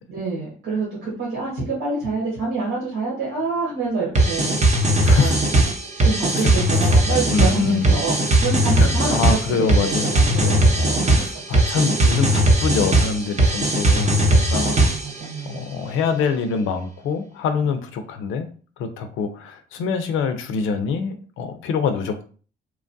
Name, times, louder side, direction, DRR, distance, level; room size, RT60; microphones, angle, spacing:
voice 1, 0.1-4.5 5.2-5.5 6.0-11.3 14.7-15.7, right 3 dB, 85° right, -6 dB, 1.3 m, -27 dB
sound 1, 4.2-15.2, right 1 dB, 35° right, 0.7 m, -18 dB
voice 2, 5.0-5.3 7.3-7.9 8.8-10.6 11.2-14.8 15.5-18.5 18.8-22.3, left 5 dB, 85° left, 8 dB, 0.5 m, -25 dB
3.0 x 2.3 x 2.6 m, 0.40 s
cardioid pair, 90°, 20 cm